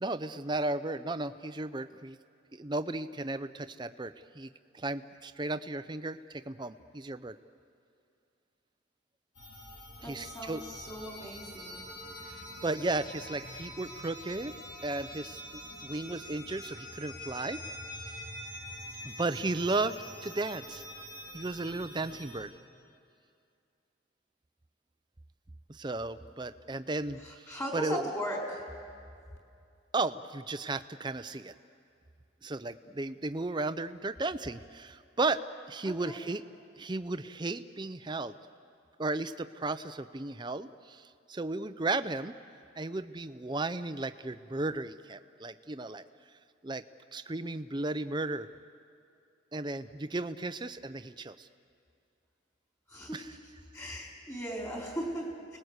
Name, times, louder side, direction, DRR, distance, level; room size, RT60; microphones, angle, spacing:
voice 1, 0.0-2.2 2.5-7.4 10.0-10.6 12.3-14.5 14.8-15.4 15.8-17.6 18.0-18.2 19.0-20.8 21.3-22.5 25.7-28.1 29.9-31.5 32.4-36.4 36.8-38.4 39.0-42.3 42.8-46.0 46.6-46.8 47.1-48.5 49.5-51.5 53.1-53.2, right 2 dB, 25° right, 11 dB, 0.6 m, -35 dB
sound 1, 9.3-22.4, left 1 dB, 70° left, 6.2 m, -45 dB
voice 2, 10.0-11.9 27.2-28.8 35.8-36.2 52.9-53.4 53.7-55.6, equal, 15° left, -2 dB, 4.1 m, -38 dB
29.5 x 20.0 x 8.1 m, 2.4 s
head